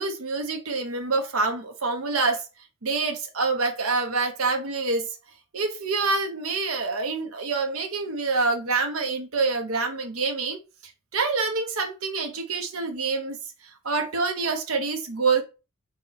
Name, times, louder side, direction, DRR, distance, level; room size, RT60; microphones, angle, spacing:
voice 1, 0.0-2.4 2.8-5.1 5.5-10.6 11.1-13.4 13.8-15.4, right 4 dB, 65° right, 0.8 m, -26 dB
4.2 x 3.0 x 4.0 m
head